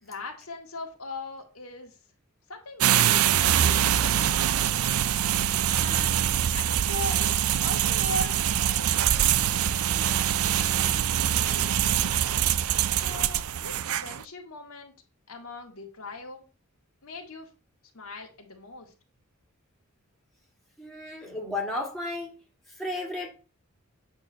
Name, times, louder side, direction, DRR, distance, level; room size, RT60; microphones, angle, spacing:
voice 1, 0.0-2.0 2.5-2.9 3.3-4.8 5.7-12.1 12.9-14.9 15.3-16.4 17.0-17.5 17.9-18.9, left 2 dB, 80° left, 1.9 m, -40 dB
sound 1, 2.8-14.2, right 10 dB, 80° right, 0.5 m, -24 dB
voice 2, 20.8-22.4 22.8-23.3, left 2 dB, ahead, 2.2 m, -33 dB
8.9 x 3.8 x 6.2 m
head